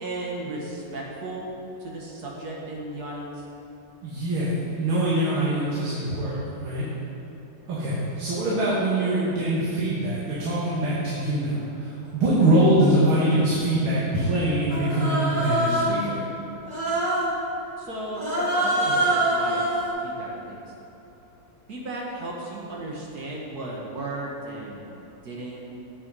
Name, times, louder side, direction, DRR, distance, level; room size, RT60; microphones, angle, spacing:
voice 1, 0.0-1.4 1.8-3.4 17.8-20.6 21.7-25.0 25.2-25.6, right 2 dB, 55° right, -3 dB, 1.5 m, -35 dB
voice 2, 4.0-6.3 6.6-6.9 7.7-16.2, right 1 dB, 80° right, -8 dB, 2.2 m, -23 dB
Human voice, 14.7-16.0 16.7-17.3 18.1-19.9, right 1 dB, 25° right, 1.5 m, -24 dB
8.3 x 6.3 x 5.3 m, 2.9 s
omnidirectional pair, 2.3 m